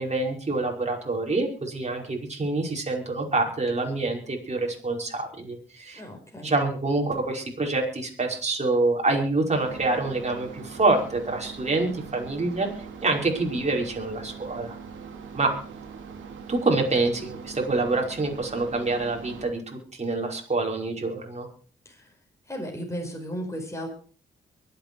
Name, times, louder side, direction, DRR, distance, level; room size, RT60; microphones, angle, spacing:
voice 1, 0.0-6.0 6.4-12.7 13.0-14.8 15.3-15.5 16.5-21.5, right 3 dB, 35° right, 0 dB, 5.3 m, -26 dB
voice 2, 5.9-6.5 21.8-22.2 22.5-23.9, equal, 15° left, 2 dB, 4.9 m, -35 dB
sound 1, 9.5-19.5, right 6 dB, 75° right, 2.8 m, -42 dB
23.5 x 8.5 x 4.7 m, 0.43 s
hypercardioid pair, 45°, 20 cm